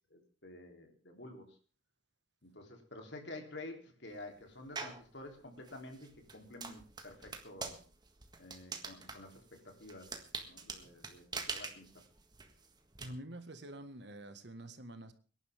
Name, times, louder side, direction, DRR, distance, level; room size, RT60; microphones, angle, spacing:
voice 1, 0.1-1.6 2.4-7.8 8.4-10.1 10.4-11.9, left 2 dB, 65° left, 3 dB, 3.3 m, -50 dB
sound 1, 4.8-5.1 5.6-13.1, right 4 dB, 20° right, 1.6 m, -44 dB
voice 2, 13.0-15.1, right 1 dB, 60° right, 9 dB, 1.6 m, -47 dB
24.0 x 11.0 x 3.6 m, 0.39 s
head